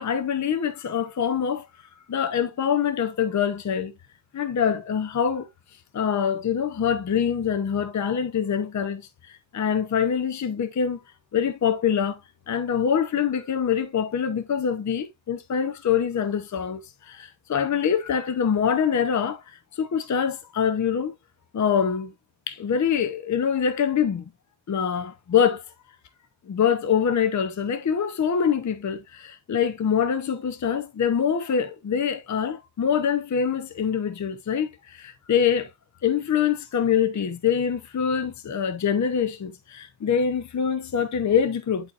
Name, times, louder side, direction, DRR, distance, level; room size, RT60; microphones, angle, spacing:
voice 1, 0.0-1.7 2.1-3.9 4.3-5.5 5.9-11.0 11.3-12.2 12.5-21.1 21.5-22.1 22.5-24.3 24.7-25.6 26.5-35.7 36.0-41.9, left 7 dB, 40° left, 0.7 m, -24 dB
11.0 x 4.2 x 2.5 m
wide cardioid pair, 135°, 46 cm